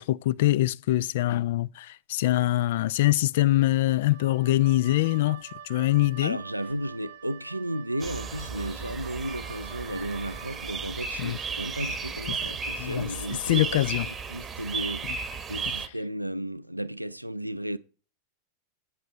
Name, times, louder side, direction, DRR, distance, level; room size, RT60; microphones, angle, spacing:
voice 1, 0.0-6.4 11.2-11.4 12.3-12.4 12.8-13.1 13.5-14.1, left 16 dB, 55° left, 0.3 m, -24 dB
Wind instrument woodwind instrument, 4.1-10.8, right 9 dB, 55° right, 0.8 m, -46 dB
voice 2, 6.2-15.2 15.5-17.8, right 1 dB, 90° right, 0.3 m, -34 dB
sound 1, 8.0-15.9, right 5 dB, 20° right, 0.9 m, -35 dB
8.4 x 7.6 x 4.2 m
figure-of-eight pair, 90°, 0 cm